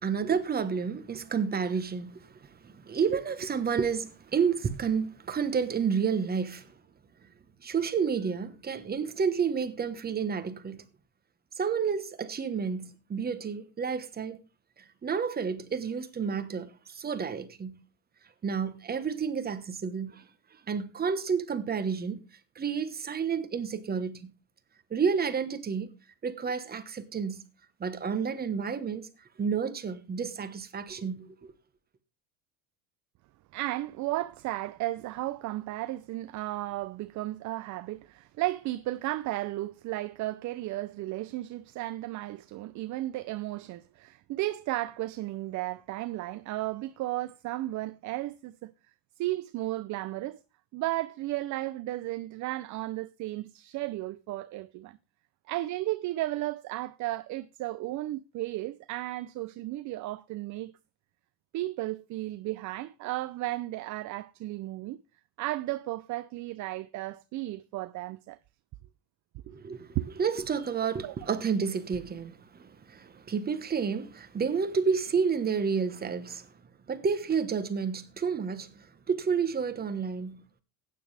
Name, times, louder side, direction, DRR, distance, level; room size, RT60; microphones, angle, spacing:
voice 1, 0.0-6.8 7.6-10.8 11.6-14.4 14.8-17.8 18.4-20.3 20.7-22.2 22.5-24.3 24.9-25.9 26.2-27.4 27.8-29.1 29.4-31.5 69.5-76.5 76.9-80.4, right 6 dB, 20° right, 1.2 m, -30 dB
voice 2, 33.5-48.7 49.2-50.4 50.7-55.0 55.5-60.7 61.5-65.0 65.4-68.4 69.5-69.6 69.9-70.1 71.0-71.3, right 17 dB, 45° right, 0.5 m, -34 dB
15.5 x 9.6 x 3.4 m
cardioid pair, 135°, 43 cm